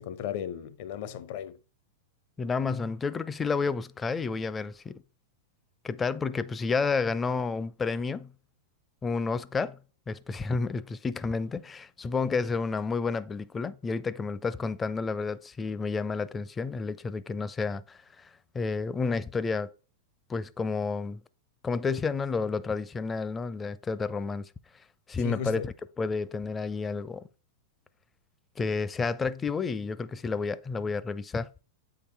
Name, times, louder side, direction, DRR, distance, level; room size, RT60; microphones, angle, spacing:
voice 1, 0.0-1.6 25.2-25.7, left 9 dB, 55° left, 0.8 m, -35 dB
voice 2, 2.4-5.0 5.8-8.3 9.0-9.8 10.1-18.0 18.5-19.7 20.3-21.2 21.6-24.5 25.1-27.2 28.6-31.5, left 4 dB, 20° left, 0.5 m, -30 dB
8.3 x 3.9 x 4.4 m
figure-of-eight pair, 95°, 0 cm